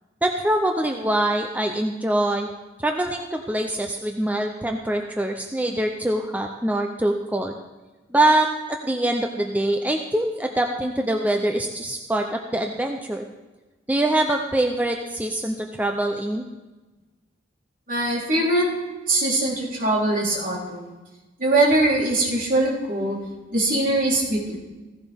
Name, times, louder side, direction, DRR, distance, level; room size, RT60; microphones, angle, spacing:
voice 1, 0.2-2.5 2.8-7.6 8.1-13.2 13.9-16.5, right 1 dB, 10° right, 2 dB, 0.6 m, -24 dB
voice 2, 17.9-18.7 19.1-20.9 21.4-23.2 23.5-24.4, right 2 dB, 50° right, -5 dB, 3.8 m, -22 dB
16.0 x 15.0 x 3.6 m, 1.2 s
head